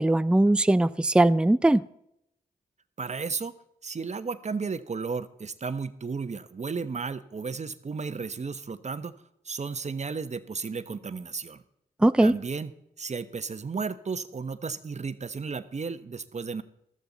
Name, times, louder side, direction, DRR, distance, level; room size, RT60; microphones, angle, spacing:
voice 1, 0.0-1.8 12.0-12.3, right 1 dB, 5° right, 14 dB, 0.5 m, -20 dB
voice 2, 3.0-3.5 3.8-9.1 9.4-11.6 12.2-12.7 13.0-16.6, right 5 dB, 45° right, 11 dB, 1.1 m, -33 dB
14.5 x 13.5 x 4.1 m, 0.76 s
cardioid pair, 55°, 16 cm